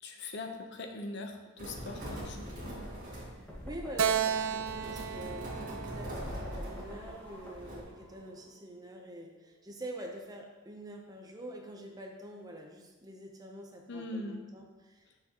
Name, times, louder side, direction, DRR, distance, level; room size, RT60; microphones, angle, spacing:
voice 1, 0.0-2.9 13.9-14.4, left 2 dB, 55° left, 4 dB, 0.7 m, -41 dB
sound 1, 1.6-7.8, equal, 40° right, 2.0 m, -43 dB
sound 2, 3.5-8.5, equal, 5° left, 1.2 m, -46 dB
voice 2, 3.6-15.2, right 1 dB, 15° right, 1 dB, 0.7 m, -46 dB
Keyboard (musical), 4.0-7.4, right 8 dB, 70° right, 0.4 m, -34 dB
8.2 x 6.6 x 2.9 m, 1.2 s
head